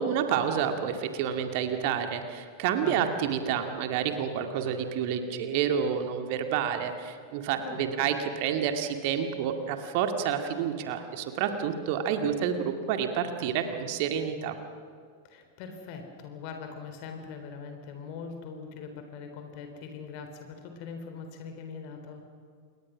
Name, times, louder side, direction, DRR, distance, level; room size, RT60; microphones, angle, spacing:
voice 1, 0.0-14.6, right 8 dB, 45° right, 6 dB, 2.1 m, -29 dB
voice 2, 2.8-3.1 7.6-8.0 15.2-22.2, left 5 dB, 45° left, 5 dB, 3.8 m, -42 dB
28.5 x 22.5 x 6.2 m, 2.2 s
figure-of-eight pair, 90°, 0 cm